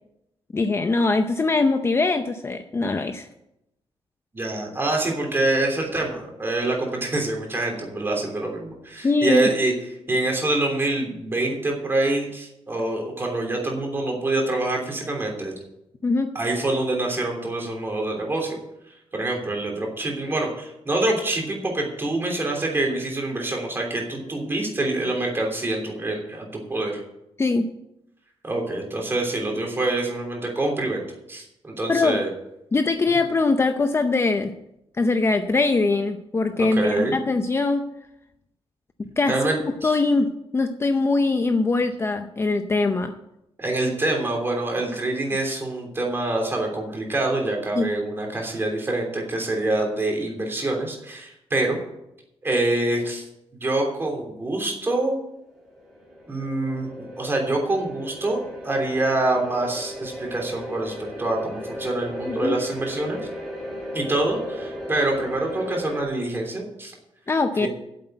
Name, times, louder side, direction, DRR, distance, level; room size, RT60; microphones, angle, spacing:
voice 1, 0.5-3.3 9.0-9.4 16.0-16.3 27.4-27.7 31.9-32.2 32.7-34.5 35.0-37.8 39.2-39.4 39.8-43.1 47.8-47.9 62.3-62.6 67.3-67.7, left 3 dB, 25° left, 7 dB, 0.6 m, -22 dB
voice 2, 4.3-9.7 10.1-15.5 16.3-18.6 19.1-27.0 28.4-31.0 31.3-32.3 33.1-33.2 36.7-37.2 39.3-39.6 39.8-39.9 43.6-51.8 52.4-53.2 53.5-55.2 56.3-58.4 58.6-63.2 63.9-66.9 67.6-67.7, right 2 dB, 20° right, 0 dB, 3.1 m, -25 dB
sound 1, 55.3-66.0, equal, ahead, 2.5 m, -36 dB
8.5 x 7.8 x 8.9 m, 0.85 s
wide cardioid pair, 145°, 10 cm